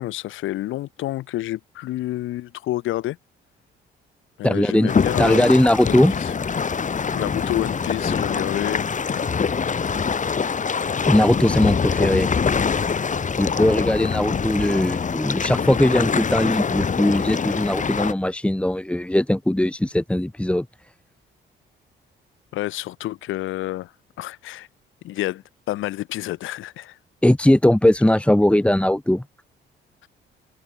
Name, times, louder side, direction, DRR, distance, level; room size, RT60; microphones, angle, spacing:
voice 1, 0.0-3.2 4.4-5.5 5.9-6.3 7.1-9.3 22.5-23.9 24.2-24.7 25.0-27.0, left 15 dB, 85° left, 1.4 m, -29 dB
voice 2, 4.4-4.9 5.2-6.1 11.0-12.3 13.4-20.7 27.2-29.2, left 1 dB, 5° left, 1.9 m, -19 dB
sound 1, 4.9-18.1, left 6 dB, 40° left, 3.9 m, -24 dB
cardioid pair, 90°, 20 cm